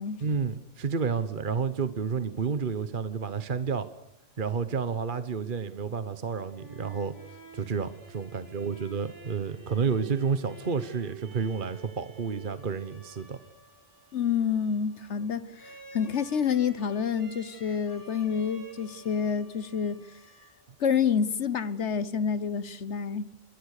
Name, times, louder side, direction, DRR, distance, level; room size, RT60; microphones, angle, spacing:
voice 1, 0.2-3.9 4.4-13.4, right 5 dB, 45° right, 1.2 m, -30 dB
sound 1, 6.3-21.0, right 4 dB, 15° right, 5.0 m, -50 dB
voice 2, 14.1-20.0 20.8-23.3, left 7 dB, 65° left, 1.4 m, -28 dB
26.5 x 23.0 x 6.6 m
omnidirectional pair, 1.3 m